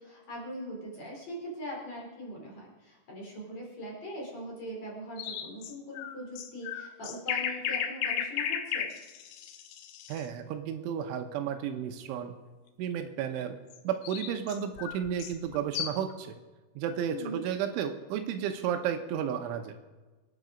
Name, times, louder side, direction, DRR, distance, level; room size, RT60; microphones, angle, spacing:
voice 1, 0.0-8.9 17.1-17.4, equal, 35° left, -3 dB, 4.9 m, -41 dB
sound 1, 5.2-10.3 13.7-16.1, left 9 dB, 80° left, 3.4 m, -35 dB
voice 2, 10.1-12.4 12.8-13.6 13.8-16.4 16.8-19.8, right 8 dB, 80° right, 6 dB, 3.3 m, -33 dB
25.5 x 9.5 x 5.1 m, 1.2 s
omnidirectional pair, 5.7 m